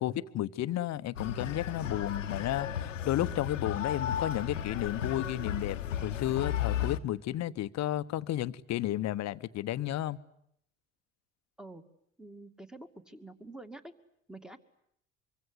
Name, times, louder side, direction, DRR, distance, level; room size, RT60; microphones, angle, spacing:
voice 1, 0.0-10.2, left 13 dB, 45° left, 1.0 m, -32 dB
sound 1, 1.2-7.0, left 9 dB, 85° left, 1.2 m, -34 dB
voice 2, 12.2-13.9 14.3-14.6, right 2 dB, ahead, 2.3 m, -47 dB
24.5 x 24.0 x 9.8 m
hypercardioid pair, 60°, 37 cm